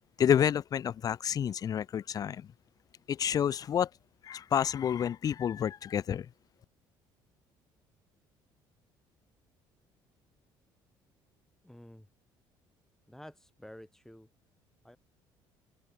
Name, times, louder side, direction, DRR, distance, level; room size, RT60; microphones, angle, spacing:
voice 1, 0.2-2.5 3.1-3.9 4.2-6.3, left 9 dB, 40° left, 0.4 m, -29 dB
voice 2, 11.6-12.1 13.1-14.3 14.8-15.0, left 1 dB, 5° left, 5.9 m, -50 dB
open air
supercardioid pair, 75°, 10 cm